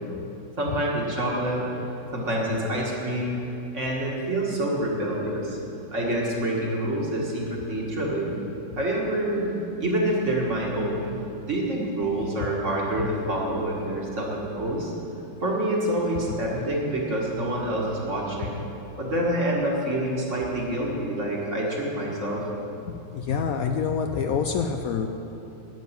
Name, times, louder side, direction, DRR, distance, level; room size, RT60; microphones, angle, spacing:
voice 1, 0.6-1.7 2.1-3.4 3.7-5.6 5.9-8.4 8.8-9.5 9.8-11.2 11.5-14.9 15.4-18.6 19.0-22.4, right 1 dB, 45° right, -3 dB, 2.2 m, -27 dB
voice 2, 22.9-25.1, left 6 dB, 70° left, 6 dB, 0.9 m, -26 dB
11.5 x 7.3 x 9.0 m, 2.9 s
omnidirectional pair, 1.8 m